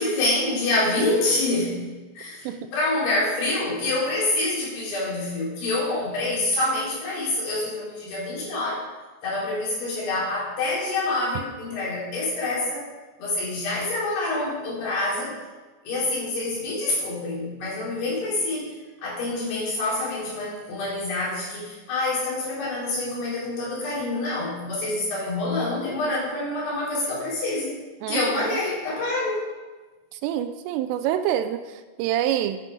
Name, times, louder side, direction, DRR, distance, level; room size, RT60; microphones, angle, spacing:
voice 1, 0.0-1.9 2.1-8.9 9.2-12.8 13.2-15.4 15.8-18.6 19.0-27.8 28.1-29.4, left 2 dB, 55° left, -6 dB, 5.0 m, -26 dB
voice 2, 28.0-28.6 30.1-32.6, right 11 dB, 85° right, 10 dB, 3.0 m, -27 dB
9.6 x 9.3 x 5.2 m, 1.2 s
omnidirectional pair, 5.8 m